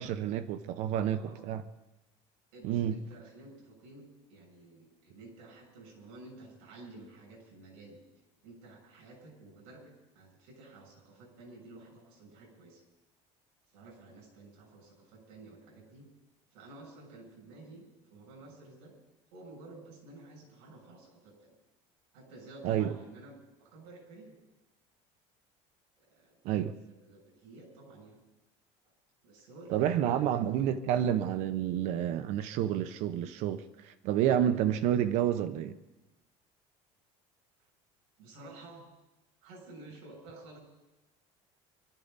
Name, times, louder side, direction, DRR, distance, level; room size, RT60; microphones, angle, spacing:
voice 1, 0.0-1.6 2.6-3.0 22.6-22.9 26.4-26.8 29.7-35.8, right 10 dB, 60° right, 12 dB, 0.8 m, -29 dB
voice 2, 1.1-1.4 2.5-8.0 8.4-12.8 13.7-16.1 16.5-18.9 19.3-21.5 22.1-24.3 26.0-28.2 28.8-28.9 29.2-30.8 38.2-38.9 39.4-40.6, right 2 dB, 85° right, 0 dB, 7.2 m, -52 dB
24.5 x 13.0 x 4.1 m, 1.0 s
cardioid pair, 165°, 13 cm